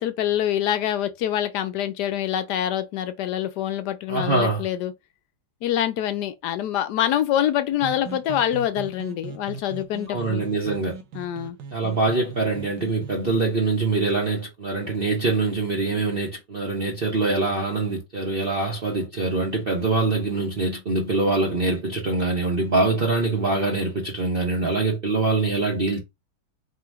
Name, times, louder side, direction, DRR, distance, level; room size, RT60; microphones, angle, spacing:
voice 1, 0.0-4.9 5.6-10.4 11.1-11.6, left 11 dB, 75° left, 1.1 m, -25 dB
voice 2, 4.1-4.7 10.1-10.9 11.7-26.0, right 3 dB, 40° right, 0.9 m, -24 dB
sound 1, 7.7-13.4, right 5 dB, 80° right, 1.4 m, -39 dB
3.8 x 2.5 x 4.6 m
omnidirectional pair, 1.9 m